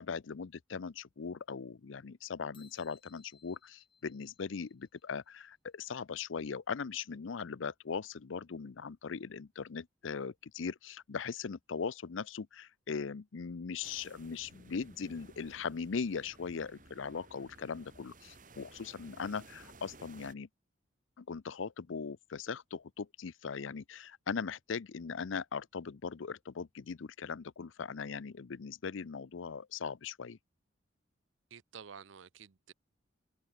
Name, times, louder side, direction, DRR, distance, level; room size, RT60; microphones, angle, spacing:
voice 1, 0.0-20.5 21.2-30.4, left 5 dB, 75° left, 0.5 m, -40 dB
sound 1, 2.5-5.2, left 7 dB, 25° left, 3.0 m, -65 dB
sound 2, 13.8-20.3, right 2 dB, 40° right, 3.9 m, -57 dB
voice 2, 31.5-32.7, right 7 dB, 70° right, 0.6 m, -51 dB
head